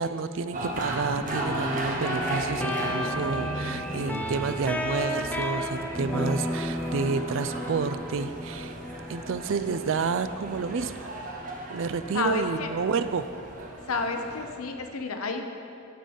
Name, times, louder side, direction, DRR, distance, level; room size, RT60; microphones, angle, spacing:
voice 1, 0.0-8.8 9.1-11.1 11.7-13.3, right 5 dB, 60° right, 12 dB, 0.4 m, -30 dB
sound 1, 0.5-14.5, right 1 dB, 35° right, 1.0 m, -36 dB
sound 2, 1.3-14.8, left 1 dB, 5° left, 0.5 m, -35 dB
voice 2, 12.1-12.7 13.9-15.4, left 4 dB, 80° left, 5 dB, 0.8 m, -30 dB
11.5 x 3.8 x 6.9 m, 2.6 s
head